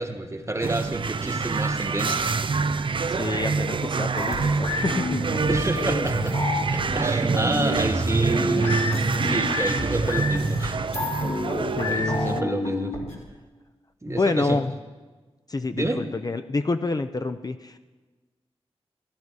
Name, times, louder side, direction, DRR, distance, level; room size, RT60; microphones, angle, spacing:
voice 1, 0.0-2.4 5.5-6.4 6.7-10.8 11.8-13.0 14.0-14.6 15.7-16.0, right 2 dB, 25° right, 6 dB, 1.4 m, -28 dB
sound 1, 0.6-12.4, right 4 dB, 50° right, 0.5 m, -26 dB
voice 2, 3.1-5.5 11.8-12.4 14.1-14.7 15.5-17.8, left 3 dB, 35° left, 9 dB, 0.6 m, -28 dB
sound 2, 4.2-13.2, left 2 dB, 75° left, 2.6 m, -29 dB
14.5 x 11.0 x 4.7 m, 1.3 s
cardioid pair, 50°, 11 cm